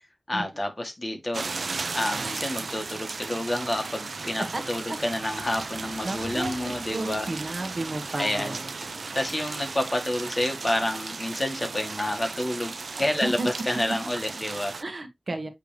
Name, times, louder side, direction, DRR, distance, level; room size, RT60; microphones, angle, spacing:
voice 1, 0.3-1.4 1.9-7.3 8.2-8.5 9.1-14.8, left 1 dB, 30° left, 1.8 m, -29 dB
sound 1, 1.3-14.8, right 4 dB, 80° right, 0.4 m, -35 dB
voice 2, 6.0-8.7 13.2-13.5 14.8-15.5, right 2 dB, 55° right, 1.5 m, -32 dB
8.3 x 3.4 x 3.3 m
wide cardioid pair, 80°, 0 cm